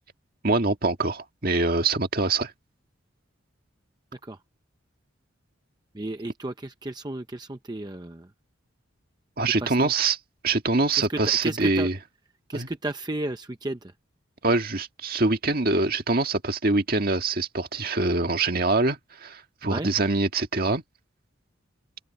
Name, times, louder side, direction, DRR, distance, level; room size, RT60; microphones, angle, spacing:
voice 1, 0.4-2.5 9.4-10.2 10.4-11.9 12.5-12.7 14.4-20.8, right 3 dB, 45° right, 1.8 m, -24 dB
voice 2, 5.9-8.3 9.6-9.9 11.0-11.9 12.5-13.9 19.6-19.9, right 2 dB, 20° right, 0.7 m, -33 dB
open air
head